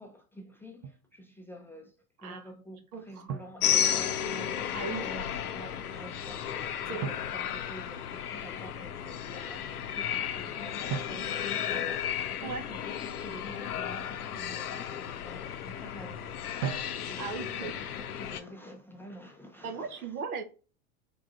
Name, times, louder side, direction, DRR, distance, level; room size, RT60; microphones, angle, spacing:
voice 1, 0.0-2.0 2.2-16.4 16.9-20.1, equal, 5° left, 0.4 m, -48 dB
Drum, 0.8-1.1 3.3-4.4 7.0-8.4 10.9-12.6 16.6-17.6, right 7 dB, 55° right, 0.7 m, -40 dB
voice 2, 2.9-3.3 4.7-5.1 6.9-7.1 12.4-12.6 17.2-17.7 19.6-20.4, right 5 dB, 75° right, 0.9 m, -37 dB
sound 1, 3.6-18.4, left 9 dB, 85° left, 0.6 m, -33 dB
3.8 x 3.6 x 2.4 m
hypercardioid pair, 90°, 44 cm